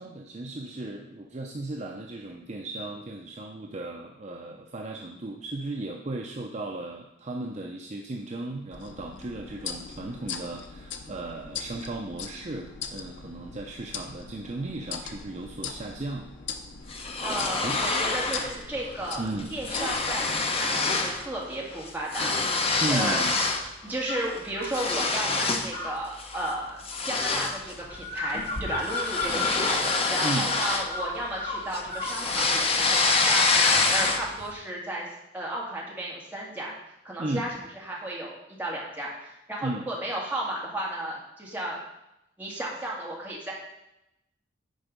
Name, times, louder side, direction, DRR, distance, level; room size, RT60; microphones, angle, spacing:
voice 1, 0.0-16.3 17.6-17.8 19.2-19.5 22.8-23.3 30.2-30.5 37.2-37.5 39.6-39.9, right 2 dB, 35° right, 1 dB, 0.6 m, -35 dB
sound 1, 8.7-20.3, left 6 dB, 70° left, 0.8 m, -40 dB
sound 2, 16.9-18.6 18.9-19.1 19.4-21.2 21.5-23.7 24.1-25.8 26.2-26.4 26.8-31.4 31.7-34.4, left 3 dB, 30° left, 0.8 m, -26 dB
voice 2, 17.2-23.4 23.8-35.1 35.3-36.7 37.0-37.5 37.7-41.8 42.4-43.5, right 1 dB, 10° right, -4 dB, 2.1 m, -34 dB
sound 3, 24.1-24.8 25.7-32.2, left 3 dB, 50° left, 2.3 m, -34 dB
10.5 x 4.6 x 5.2 m, 0.87 s
head